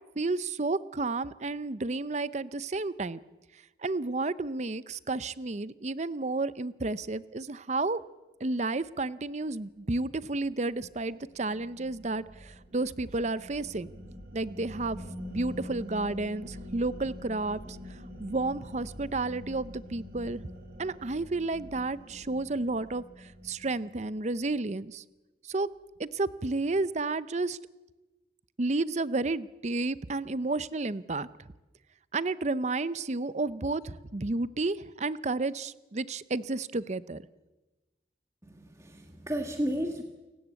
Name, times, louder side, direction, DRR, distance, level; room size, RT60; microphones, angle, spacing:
voice 1, 0.2-3.2 3.8-8.0 8.4-13.9 14.3-15.0 15.3-17.6 18.2-20.4 20.8-25.0 25.5-25.7 26.0-27.6 28.6-31.3 32.1-37.2, right 3 dB, 40° right, 16 dB, 0.7 m, -31 dB
sound 1, 10.1-24.5, equal, 60° right, 3.9 m, -45 dB
voice 2, 38.4-40.0, equal, 15° right, 3 dB, 1.7 m, -33 dB
29.0 x 16.0 x 8.3 m, 1.1 s
head